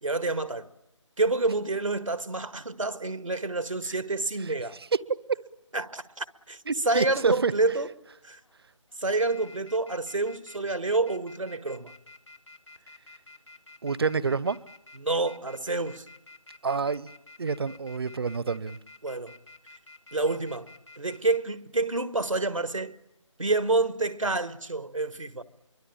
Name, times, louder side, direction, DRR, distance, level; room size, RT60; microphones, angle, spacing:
voice 1, 0.0-0.7 1.2-4.8 5.7-6.6 6.8-7.9 8.2-8.4 9.0-11.9 14.9-16.1 19.0-19.4 20.1-20.7 21.0-23.0 23.4-25.4, right 3 dB, 85° right, 1.8 m, -28 dB
sound 1, 6.1-6.5 7.1-7.8 8.2-8.5 8.9-21.4, left 3 dB, 65° left, 1.9 m, -50 dB
voice 2, 6.7-7.5 13.8-14.6 16.6-17.1 17.4-18.8, right 5 dB, 50° right, 0.9 m, -27 dB
27.5 x 23.5 x 8.8 m
figure-of-eight pair, 160°, 16 cm